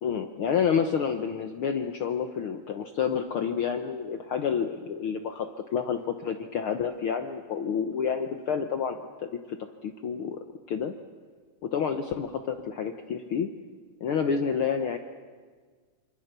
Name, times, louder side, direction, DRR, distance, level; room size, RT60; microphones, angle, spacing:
voice 1, 0.0-9.6 9.8-10.4 10.7-10.9 11.6-13.5 14.0-15.0, left 7 dB, 85° left, 6 dB, 1.1 m, -29 dB
26.5 x 25.5 x 6.8 m, 1.5 s
omnidirectional pair, 3.8 m